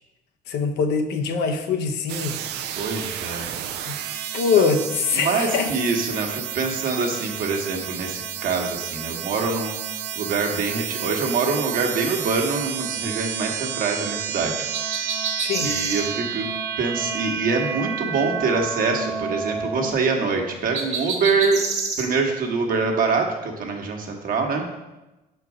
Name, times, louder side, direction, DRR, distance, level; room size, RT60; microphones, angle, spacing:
voice 1, 0.5-2.4 3.9-4.0 4.3-5.7 15.4-15.7, left 5 dB, 80° left, 6 dB, 0.8 m, -23 dB
sound 1, 2.1-19.9, right 8 dB, 80° right, 0.5 m, -31 dB
voice 2, 2.8-3.5 4.6-4.7 5.1-9.8 10.1-15.0 15.6-16.5 16.8-21.6 22.0-24.6, right 4 dB, 55° right, 2 dB, 1.3 m, -25 dB
sound 2, 14.7-16.1 20.7-22.1, right 4 dB, 40° right, 1.3 m, -28 dB
6.1 x 4.5 x 4.8 m, 1.0 s
cardioid pair, 110°, 17 cm